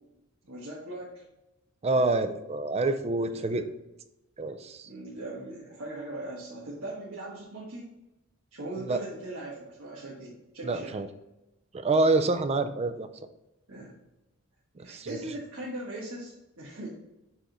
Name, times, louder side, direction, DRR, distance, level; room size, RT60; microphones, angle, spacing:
voice 1, 0.4-1.2 3.3-3.6 4.9-7.8 8.5-11.0 13.7-13.9 14.8-16.9, right 1 dB, 85° right, -5 dB, 1.4 m, -39 dB
voice 2, 1.8-3.7 4.4-4.9 8.8-9.0 10.6-11.1 11.7-13.1 14.8-15.2, right 2 dB, 30° right, 10 dB, 0.5 m, -27 dB
7.1 x 3.7 x 3.9 m, 0.94 s
head